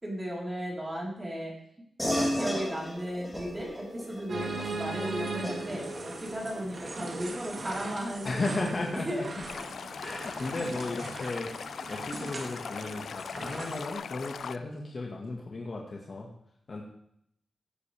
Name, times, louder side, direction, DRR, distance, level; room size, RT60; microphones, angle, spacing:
voice 1, 0.0-1.5 2.0-9.3, equal, 20° right, -3 dB, 4.3 m, -35 dB
sound 1, 2.0-11.9, equal, 10° left, 3.4 m, -38 dB
sound 2, 4.3-13.9, right 3 dB, 50° right, 2.3 m, -39 dB
voice 2, 8.2-9.3 10.0-11.5 11.9-16.3 16.7-16.8, left 2 dB, 45° left, -1 dB, 1.8 m, -35 dB
Stream, 9.5-14.6, left 6 dB, 80° left, 0.4 m, -40 dB
16.0 x 9.8 x 3.5 m, 0.71 s
wide cardioid pair, 110°, 0 cm